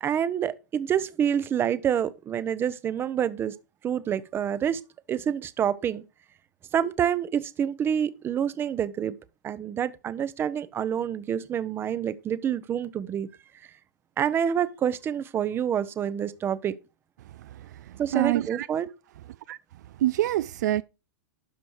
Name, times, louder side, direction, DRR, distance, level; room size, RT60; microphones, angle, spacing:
voice 1, 0.0-3.5 3.8-4.8 5.1-6.0 6.7-9.1 9.4-13.3 14.2-16.8 18.0-18.9, right 9 dB, 25° right, 0.7 m, -27 dB
voice 2, 17.5-18.7 19.5-19.6 20.0-20.8, right 14 dB, 70° right, 0.4 m, -26 dB
12.0 x 5.2 x 4.7 m
hypercardioid pair, 125°, 10 cm